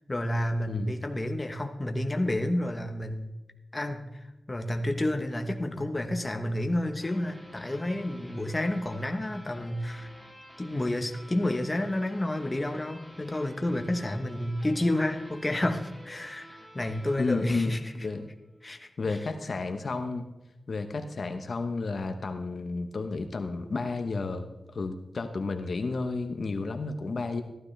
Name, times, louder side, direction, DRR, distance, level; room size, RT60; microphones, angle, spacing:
voice 1, 0.1-3.3 3.7-10.1 10.6-16.5 16.7-17.9 18.6-19.2, left 1 dB, 25° left, 5 dB, 1.1 m, -30 dB
sound 1, 7.0-18.3, equal, 10° right, 2.6 m, -51 dB
voice 2, 17.2-18.3 19.0-20.2 20.7-24.4 24.7-27.4, left 3 dB, 60° left, 7 dB, 1.0 m, -32 dB
14.5 x 12.5 x 3.3 m, 1.0 s
wide cardioid pair, 105°, 0 cm